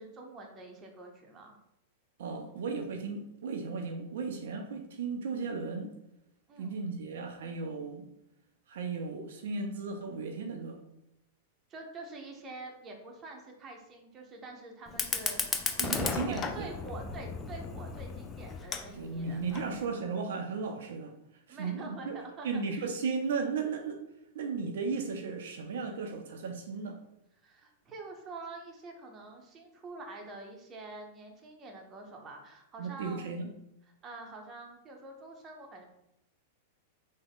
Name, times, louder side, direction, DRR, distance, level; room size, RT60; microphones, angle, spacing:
voice 1, 0.0-1.5 6.5-6.8 11.7-15.7 15.9-19.7 21.5-22.9 27.4-33.3 34.0-35.9, right 3 dB, 25° right, 2 dB, 0.7 m, -46 dB
voice 2, 2.2-5.9 6.6-8.1 8.7-10.8 15.8-16.7 18.9-21.1 21.5-22.2 22.4-24.0 24.3-27.0 32.8-33.5, right 4 dB, 75° right, 4 dB, 0.4 m, -35 dB
Fire, 14.9-19.9, left 5 dB, 25° left, 0.4 m, -35 dB
3.5 x 2.1 x 3.5 m, 0.85 s
hypercardioid pair, 125°, 0 cm